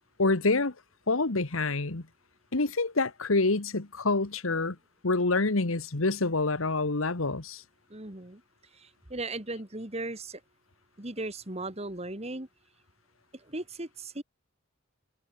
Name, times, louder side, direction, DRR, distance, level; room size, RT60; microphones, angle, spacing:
voice 1, 0.2-0.7 1.1-2.0 2.5-4.7 5.0-7.6, left 3 dB, 80° left, 1.5 m, -27 dB
voice 2, 7.9-8.4 8.7-10.4 11.0-12.5 13.3-14.2, right 2 dB, 30° right, 2.5 m, -37 dB
head